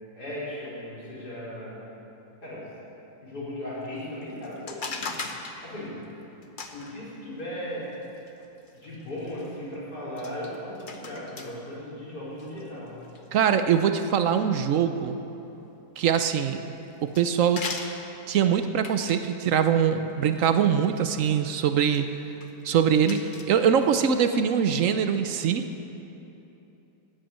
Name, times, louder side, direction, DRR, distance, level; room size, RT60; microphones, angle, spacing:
voice 1, 0.1-1.8 2.4-2.6 3.2-5.1 5.6-5.9 6.7-7.9 8.7-12.9, left 1 dB, 60° left, -8 dB, 5.1 m, -37 dB
sound 1, 4.2-5.6 6.4-6.9 7.9-9.5 10.2-11.5 12.4-13.6 16.4-16.5 16.9-17.3 17.6-17.9 18.8-19.2 20.5-21.1 21.4-21.6 21.9-22.0 22.4-22.5 22.8-23.4, left 4 dB, 40° left, 0.8 m, -38 dB
voice 2, 13.3-15.2 16.0-16.6 17.0-17.7 18.3-22.0 22.6-25.7, right 8 dB, 65° right, 9 dB, 0.8 m, -23 dB
13.5 x 9.1 x 8.8 m, 3.0 s
omnidirectional pair, 2.0 m